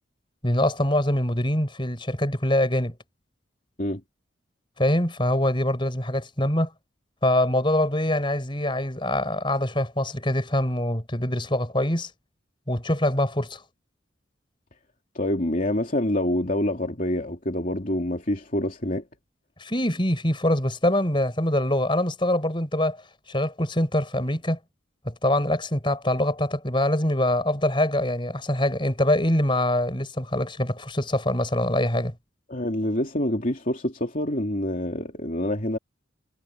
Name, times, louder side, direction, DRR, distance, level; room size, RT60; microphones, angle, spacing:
voice 1, 0.4-2.9 4.8-6.7 7.2-12.1 12.7-13.6 19.6-23.0 23.3-24.6 25.0-32.1, left 1 dB, 25° left, 5.1 m, -24 dB
voice 2, 15.1-19.0 32.5-35.8, left 1 dB, 45° left, 2.9 m, -26 dB
head